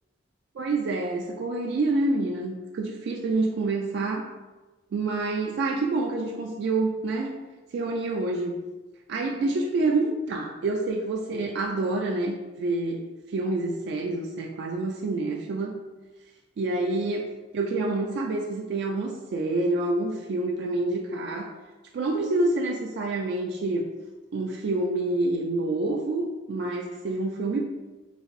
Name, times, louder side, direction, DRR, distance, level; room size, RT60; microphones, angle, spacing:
voice 1, 0.5-4.2 4.9-7.4 7.7-8.6 9.1-15.8 16.6-17.3 17.5-21.5 21.9-23.9 24.3-27.6, right 2 dB, 65° right, 0 dB, 0.3 m, -27 dB
4.1 x 2.6 x 2.4 m, 1.2 s
head